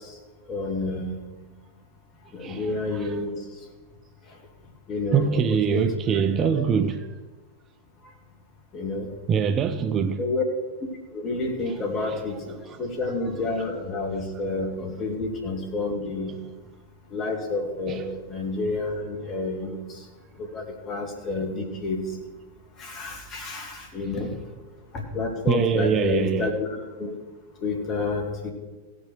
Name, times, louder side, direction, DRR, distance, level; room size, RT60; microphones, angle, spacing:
voice 1, 0.5-1.2 2.3-3.3 4.9-5.4 5.7-5.9 6.4-6.5 6.8-6.9 8.7-9.1 10.2-10.4 11.1-16.4 17.1-19.8 20.4-22.0 22.8-24.3 24.9-27.2 27.6-28.5, left 3 dB, 30° left, 2.5 m, -29 dB
voice 2, 2.4-3.2 5.1-7.1 9.3-10.3 11.7-12.2 12.6-12.9 14.1-14.2 17.9-18.0 25.5-26.5, right 7 dB, 25° right, 0.5 m, -25 dB
16.5 x 6.0 x 6.4 m
figure-of-eight pair, 95°, 0 cm